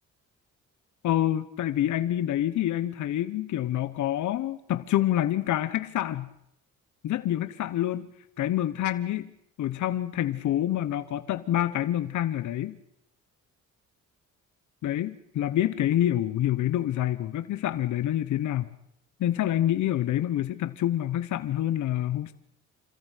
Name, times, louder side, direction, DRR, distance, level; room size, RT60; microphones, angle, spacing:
voice 1, 1.0-6.3 7.0-8.1 8.4-9.3 9.6-12.8 14.8-18.7 19.2-22.3, left 12 dB, 75° left, 12 dB, 1.1 m, -27 dB
26.5 x 14.0 x 8.2 m, 0.76 s
cardioid pair, 90°, 30 cm